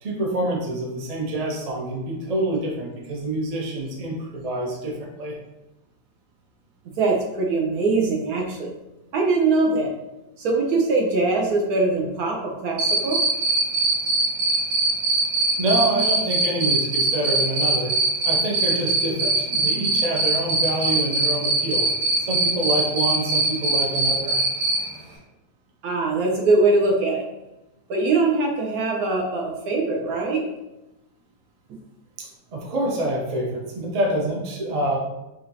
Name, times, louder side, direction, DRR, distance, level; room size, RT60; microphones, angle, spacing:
voice 1, 0.0-5.4 15.6-17.9 18.2-21.9 22.2-24.4 32.2-35.0, right 1 dB, 50° right, -2 dB, 0.4 m, -26 dB
voice 2, 7.0-8.7 9.1-9.9 10.4-13.2 25.8-27.2 27.9-30.4, right 3 dB, 70° right, 0 dB, 1.1 m, -22 dB
Cricket, 12.8-24.8, right 3 dB, 85° right, 1.6 m, -21 dB
4.9 x 2.6 x 2.7 m, 0.96 s
omnidirectional pair, 1.7 m